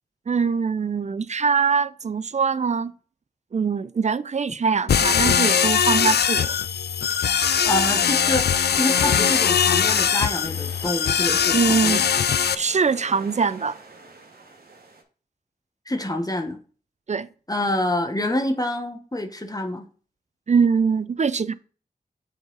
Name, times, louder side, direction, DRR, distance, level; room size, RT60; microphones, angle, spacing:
voice 1, 0.3-2.9 3.5-6.6 11.5-12.1 12.6-13.8 17.1-17.3 20.5-21.5, right 5 dB, 45° right, 0.4 m, -23 dB
sound 1, 4.9-12.5, left 8 dB, 80° left, 0.4 m, -21 dB
voice 2, 7.7-8.5 8.8-12.0 15.9-16.6 17.5-19.9, left 1 dB, 20° left, 1.1 m, -26 dB
sound 2, 9.2-15.0, right 3 dB, 65° right, 1.4 m, -45 dB
7.3 x 4.0 x 3.9 m
cardioid pair, 40°, 17 cm